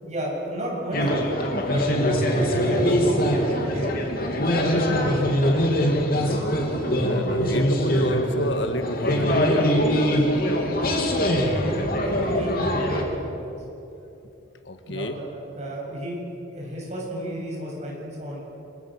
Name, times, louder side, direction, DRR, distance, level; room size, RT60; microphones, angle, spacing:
voice 1, 0.0-1.2 1.7-4.0 4.3-5.3 11.2-13.5 14.9-16.2 16.5-18.4, equal, 35° right, -3 dB, 7.6 m, -33 dB
sound 1, 0.9-13.0, equal, 45° left, 3.0 m, -23 dB
voice 2, 6.9-9.7 14.7-15.2, left 1 dB, 65° left, 7 dB, 1.6 m, -29 dB
27.0 x 23.0 x 6.5 m, 2.9 s
head